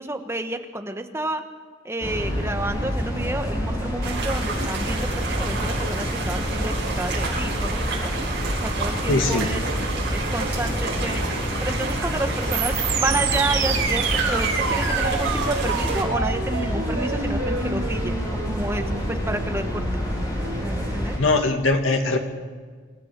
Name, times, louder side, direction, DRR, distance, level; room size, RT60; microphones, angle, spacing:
voice 1, 0.0-1.4 1.8-8.1 8.6-9.6 10.1-11.2 11.6-20.1 20.6-21.1, right 1 dB, 15° right, 6 dB, 1.2 m, -30 dB
sound 1, 2.0-21.2, equal, 20° left, 4.4 m, -28 dB
sound 2, 2.0-4.3 12.5-21.1, right 5 dB, 75° right, 2.3 m, -29 dB
sound 3, 4.0-16.0, right 3 dB, 60° right, 7.6 m, -30 dB
voice 2, 9.1-9.5 21.2-22.2, left 2 dB, 75° left, 3 dB, 2.5 m, -21 dB
28.0 x 14.0 x 6.7 m, 1.5 s
head